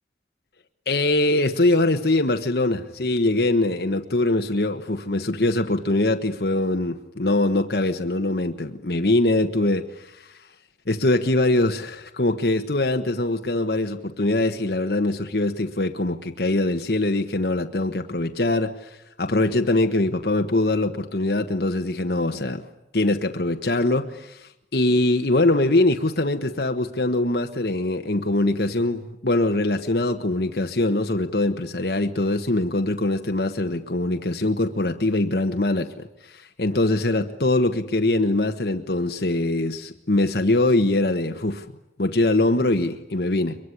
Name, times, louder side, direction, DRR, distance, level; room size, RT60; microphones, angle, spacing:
voice 1, 0.9-10.3 10.9-22.7 22.9-41.6 42.0-43.6, left 2 dB, 65° left, 6 dB, 1.2 m, -23 dB
23.5 x 23.0 x 9.9 m, 0.88 s
head